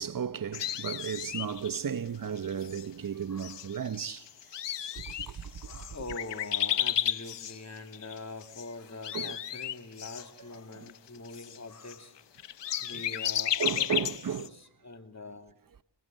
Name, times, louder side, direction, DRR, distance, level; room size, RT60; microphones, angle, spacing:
voice 1, 0.0-4.2 4.9-5.4 9.1-9.3 13.6-14.4, right 7 dB, 50° right, 1.0 m, -34 dB
sound 1, 0.5-1.8 2.4-2.8 3.4-8.6 8.9-14.5, left 10 dB, 85° left, 1.0 m, -33 dB
voice 2, 3.3-3.8 5.2-12.2 12.6-14.1 14.4-15.5, left 3 dB, 40° left, 2.7 m, -44 dB
28.5 x 19.5 x 7.5 m
cardioid pair, 60°, 41 cm